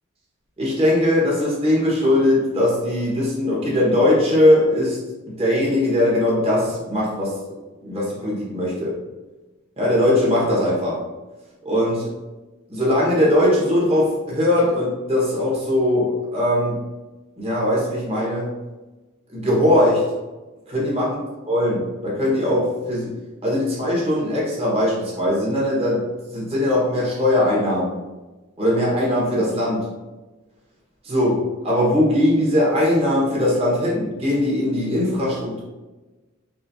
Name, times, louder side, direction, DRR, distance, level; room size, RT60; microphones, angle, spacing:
voice 1, 0.6-5.0 5.3-7.4 7.8-9.0 9.8-11.0 11.6-12.1 12.7-16.8 17.4-18.5 19.3-20.0 20.7-21.2 21.5-23.1 23.4-27.9 28.6-29.9 31.0-35.6, left 1 dB, 30° right, -5 dB, 1.4 m, -20 dB
5.4 x 3.4 x 2.8 m, 1.2 s
head